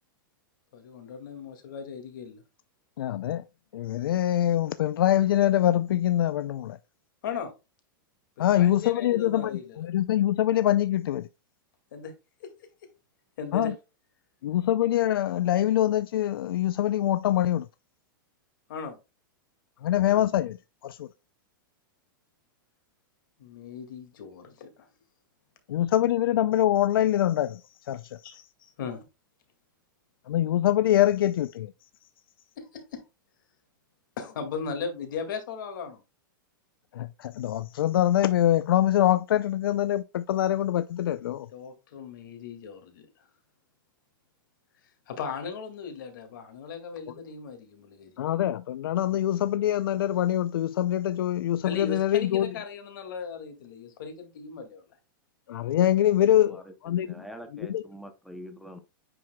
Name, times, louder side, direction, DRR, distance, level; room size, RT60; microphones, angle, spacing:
voice 1, 0.7-2.4 7.2-7.5 8.4-9.9 11.9-12.1 12.4-12.5 13.4-13.7 18.7-19.0 23.4-24.9 28.2-29.0 32.6-33.0 34.2-36.0 41.5-43.1 45.1-48.2 51.6-54.8, left 6 dB, 65° left, 2.0 m, -37 dB
voice 2, 3.0-3.4 3.7-6.8 8.4-11.3 13.5-13.7 14.4-17.7 19.8-20.6 20.8-21.1 25.7-28.2 30.3-31.7 36.9-41.5 48.2-52.5 55.5-57.2 57.5-57.8, left 12 dB, 85° left, 0.4 m, -24 dB
voice 3, 56.2-58.8, equal, ahead, 0.6 m, -45 dB
9.6 x 4.7 x 2.2 m
supercardioid pair, 160°, 12 cm